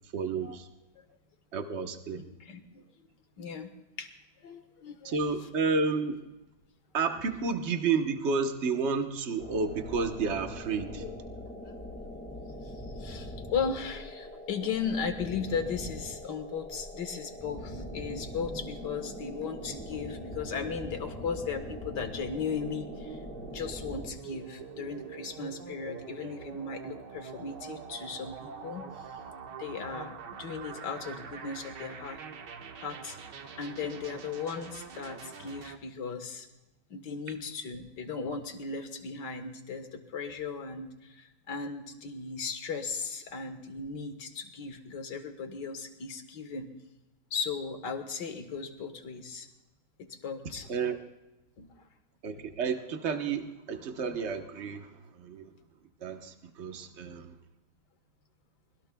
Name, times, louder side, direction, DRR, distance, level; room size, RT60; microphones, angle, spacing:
voice 1, 0.1-0.7 1.5-2.2 5.0-6.2 6.9-11.0 50.7-51.0 52.2-54.9 55.2-55.5 56.0-57.3, right 5 dB, 40° right, 6 dB, 1.2 m, -31 dB
voice 2, 2.2-2.9 3.4-3.7 4.0-4.1 4.4-5.2 11.0-11.2 11.7-11.8 12.6-23.2 23.5-29.2 29.6-32.2 32.8-33.2 33.6-36.5 36.9-46.7 47.3-49.5 50.0-50.7 51.6-51.7, left 5 dB, 60° left, 6 dB, 1.9 m, -37 dB
sound 1, 9.4-24.1, left 1 dB, 5° left, 1.6 m, -42 dB
sound 2, 17.5-35.8, right 6 dB, 65° right, 1.6 m, -45 dB
25.0 x 21.0 x 2.3 m, 0.99 s
omnidirectional pair, 2.1 m